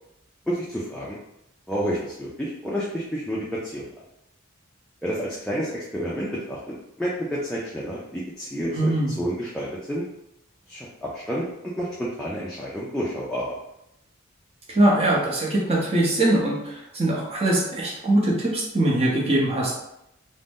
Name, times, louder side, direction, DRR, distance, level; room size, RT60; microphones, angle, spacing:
voice 1, 0.5-1.2 1.7-3.8 5.0-8.9 9.2-10.1 10.7-11.5 11.8-13.6, equal, 5° left, -7 dB, 0.3 m, -30 dB
voice 2, 8.7-9.2 14.7-19.8, right 1 dB, 30° right, -4 dB, 0.7 m, -22 dB
2.5 x 2.1 x 3.5 m, 0.84 s
head